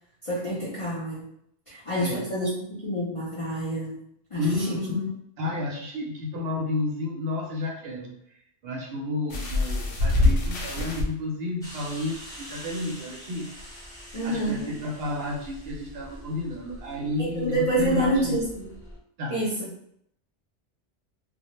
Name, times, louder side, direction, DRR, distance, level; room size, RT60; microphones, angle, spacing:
voice 1, 0.2-1.2 1.7-4.0 4.3-4.8 14.1-14.6 17.2-18.7 19.3-19.8, right 1 dB, 45° left, -8 dB, 0.4 m, -28 dB
voice 2, 1.7-2.2 4.4-5.1 5.4-8.2 8.6-13.5 14.2-18.4 19.2-19.4, left 2 dB, 65° right, -1 dB, 0.7 m, -31 dB
sound 1, 9.3-11.0 12.0-12.1 12.5-12.6, left 2 dB, 85° left, 0.9 m, -24 dB
sound 2, 11.6-19.0, equal, 5° left, 0.6 m, -44 dB
2.1 x 2.0 x 2.9 m, 0.72 s
omnidirectional pair, 1.2 m